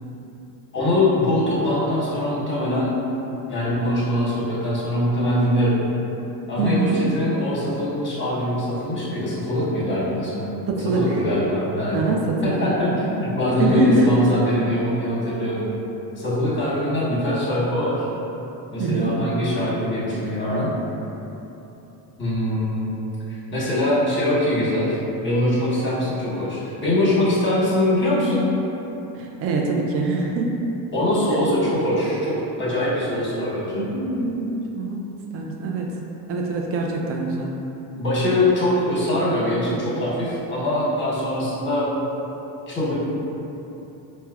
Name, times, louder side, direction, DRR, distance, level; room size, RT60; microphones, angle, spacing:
voice 1, 0.7-2.9 3.5-5.8 6.5-10.5 10.9-12.0 12.4-15.7 16.2-18.1 18.7-20.7 22.2-22.9 23.3-28.4 30.9-33.8 38.0-41.9 42.7-43.0, left 1 dB, 25° left, -7 dB, 1.0 m, -22 dB
voice 2, 6.6-7.0 10.7-11.2 11.9-12.6 13.6-14.1 18.8-19.2 29.1-30.5 31.3-31.4 33.7-35.0 35.3-36.0 36.3-37.6, right 3 dB, 35° right, 0 dB, 0.4 m, -23 dB
4.3 x 2.1 x 2.3 m, 3.0 s
supercardioid pair, 105°, 44 cm